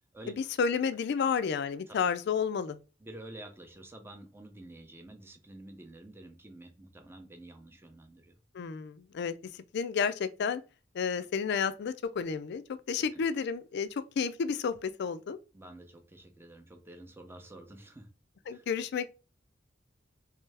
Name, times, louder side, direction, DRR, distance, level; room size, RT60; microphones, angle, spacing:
voice 1, 0.3-2.8 8.5-10.6 10.9-15.4 18.5-19.1, left 6 dB, 60° left, 0.4 m, -31 dB
voice 2, 3.0-8.3 13.0-13.2 15.5-18.1 18.4-18.7, right 1 dB, 10° right, 0.6 m, -49 dB
3.3 x 3.2 x 3.3 m
head